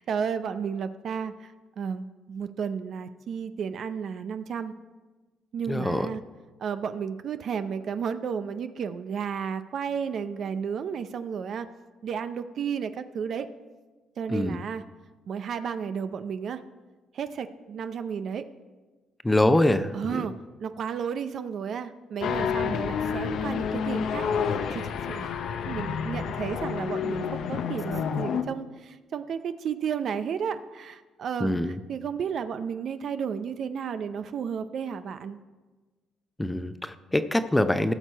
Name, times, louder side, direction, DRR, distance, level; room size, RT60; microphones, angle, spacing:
voice 1, 0.0-4.7 5.5-6.2 6.6-11.7 12.0-13.5 14.2-14.8 15.3-16.6 17.1-18.4 19.9-25.3 25.7-35.4, right 7 dB, 60° right, 11 dB, 0.5 m, -33 dB
voice 2, 5.7-6.1 14.3-14.6 19.2-20.3 31.4-31.8 36.4-37.9, left 1 dB, 10° left, 10 dB, 0.7 m, -24 dB
sound 1, 22.2-28.4, left 7 dB, 70° left, 0.7 m, -29 dB
16.0 x 6.1 x 4.6 m, 1.3 s
supercardioid pair, 70°, 0 cm